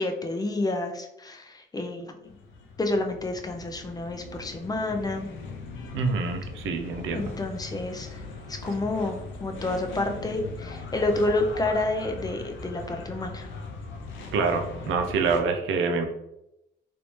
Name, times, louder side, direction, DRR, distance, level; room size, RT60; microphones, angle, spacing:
voice 1, 0.0-2.1 2.8-5.3 7.1-8.1 8.5-13.5, left 2 dB, 20° left, 4 dB, 0.5 m, -29 dB
sound 1, 2.3-15.4, left 3 dB, 75° left, 0.6 m, -40 dB
voice 2, 5.9-7.3 14.3-16.0, right 4 dB, 80° right, 5 dB, 0.5 m, -26 dB
3.3 x 2.7 x 3.0 m, 0.86 s
cardioid pair, 90°, 20 cm